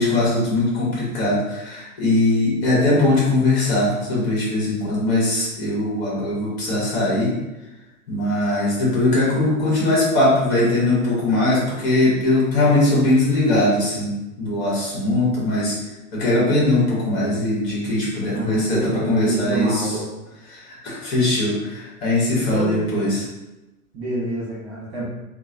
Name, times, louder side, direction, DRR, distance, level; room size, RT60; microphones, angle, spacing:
voice 1, 0.0-7.3 8.1-14.1 14.4-15.8 16.1-18.8 19.1-19.8 20.5-23.2, left 2 dB, 45° left, -5 dB, 1.3 m, -20 dB
voice 2, 18.3-20.0 22.3-22.8 23.9-25.0, right 1 dB, 25° right, -7 dB, 1.2 m, -27 dB
2.9 x 2.2 x 2.6 m, 1.0 s
figure-of-eight pair, 100°, 44 cm